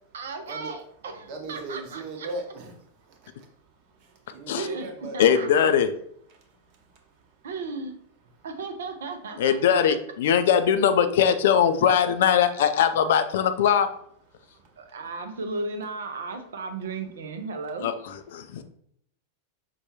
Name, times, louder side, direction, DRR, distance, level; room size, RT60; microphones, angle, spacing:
voice 1, 0.1-2.3 4.5-5.6 7.4-7.9 8.4-9.6 10.3-10.4 14.8-17.9, right 3 dB, 65° right, 7 dB, 0.4 m, -35 dB
voice 2, 1.3-2.7 3.1-3.5 4.0-5.2 6.3-7.0 14.3-14.9 18.4-18.6, right 2 dB, 45° right, 3 dB, 0.8 m, -39 dB
voice 3, 5.2-5.9 9.4-13.9 17.8-17.9 18.3-18.6, left 8 dB, 55° left, 9 dB, 0.3 m, -21 dB
5.2 x 2.2 x 2.9 m, 0.68 s
figure-of-eight pair, 90°, 0 cm